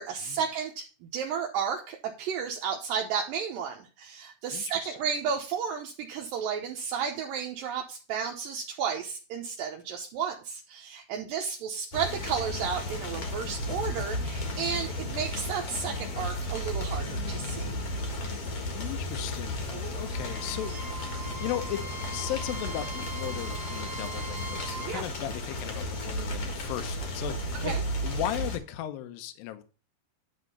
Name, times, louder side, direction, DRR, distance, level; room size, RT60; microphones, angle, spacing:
voice 1, 0.0-17.8 19.7-20.0 24.8-25.0 27.6-27.8, right 7 dB, 75° right, 2.1 m, -33 dB
voice 2, 4.5-5.0 18.7-20.7 21.4-21.8 22.1-27.7 28.0-29.6, left 13 dB, 75° left, 2.2 m, -36 dB
sound 1, 11.9-28.6, left 1 dB, 55° left, 1.6 m, -34 dB
Bowed string instrument, 19.9-25.0, right 3 dB, 60° right, 2.2 m, -41 dB
10.5 x 3.6 x 6.9 m
omnidirectional pair, 5.0 m